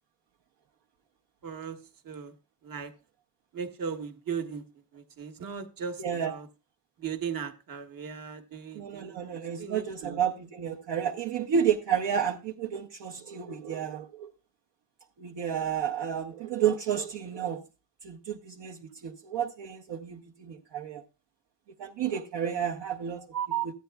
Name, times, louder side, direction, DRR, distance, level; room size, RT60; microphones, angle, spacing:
voice 1, 1.4-1.8 2.0-2.3 2.6-2.9 3.5-6.5 7.0-10.2 23.2-23.7, right 7 dB, 45° right, 1.2 m, -37 dB
voice 2, 6.0-6.3 8.7-14.3 15.2-17.6 18.0-21.0 21.8-23.2, right 8 dB, 65° right, 0.9 m, -31 dB
14.0 x 9.2 x 2.3 m
cardioid pair, 120°, 47 cm